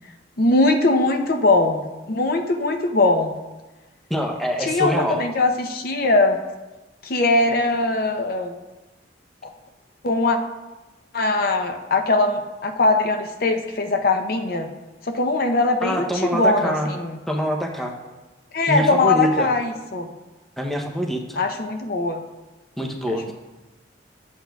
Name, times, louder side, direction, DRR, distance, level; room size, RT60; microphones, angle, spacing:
voice 1, 0.4-3.4 4.6-6.4 7.0-8.5 10.0-10.4 11.1-14.7 15.0-17.2 18.5-20.1 21.4-22.2, left 2 dB, 50° left, 5 dB, 0.6 m, -21 dB
voice 2, 4.1-5.2 15.8-16.9 17.3-17.9 18.7-19.5 20.6-21.4 22.8-23.3, equal, ahead, 1 dB, 0.7 m, -25 dB
11.5 x 8.0 x 2.3 m, 1.1 s
head